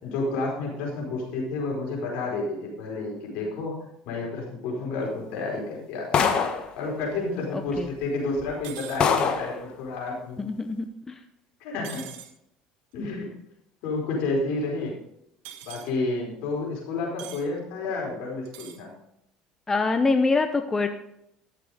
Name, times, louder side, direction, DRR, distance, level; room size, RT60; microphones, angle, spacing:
voice 1, 0.0-3.8 4.0-6.2 6.8-10.4 11.6-12.1 12.9-13.3 13.8-15.0 15.6-18.9, left 3 dB, 75° left, -1 dB, 4.6 m, -30 dB
sound 1, 6.1-6.7 7.7-7.8 8.4-8.5 9.0-9.5, left 6 dB, 45° left, 1.5 m, -23 dB
voice 2, 7.5-7.9 10.4-11.2 19.7-20.9, left 3 dB, 20° left, 7 dB, 0.8 m, -25 dB
sound 2, 8.6-9.0 11.8-12.3 15.4-15.9 17.2-17.4 18.4-18.8, right 11 dB, 75° right, 1.5 m, -42 dB
13.5 x 6.8 x 5.0 m, 0.79 s
supercardioid pair, 95°, 2 cm